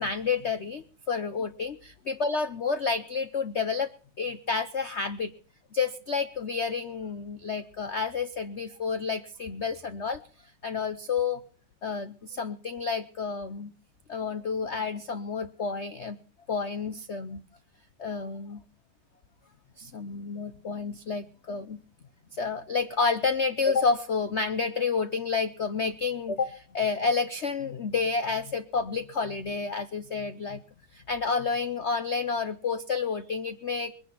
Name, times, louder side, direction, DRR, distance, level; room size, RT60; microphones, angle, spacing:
voice 1, 0.0-3.9 4.2-5.3 5.7-10.2 10.6-11.4 11.8-13.7 14.1-16.2 16.5-17.4 18.0-18.6 19.8-21.8 22.3-30.6 30.9-33.9, left 5 dB, 80° left, 10 dB, 0.6 m, -30 dB
21.5 x 10.0 x 5.9 m, 0.43 s
omnidirectional pair, 2.4 m